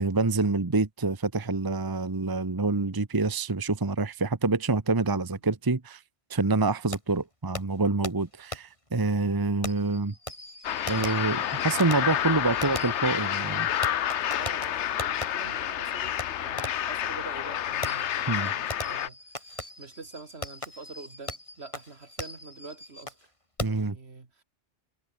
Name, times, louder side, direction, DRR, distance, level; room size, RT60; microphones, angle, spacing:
voice 1, 0.0-6.0 6.3-10.1 10.9-13.7 18.3-18.5 23.6-24.0, right 3 dB, 20° right, 1.0 m, -27 dB
Fireworks, 6.9-7.0 7.5-7.6 8.0-8.1 8.5-8.6 9.6-15.3 16.2-16.3 16.6-16.9 17.8-23.2 23.6-23.9, left 1 dB, 25° left, 3.9 m, -39 dB
sound 1, 10.6-19.1, left 10 dB, 75° left, 1.1 m, -29 dB
voice 2, 12.2-12.6 14.4-23.2 23.6-24.4, right 4 dB, 65° right, 2.5 m, -46 dB
omnidirectional pair, 1.2 m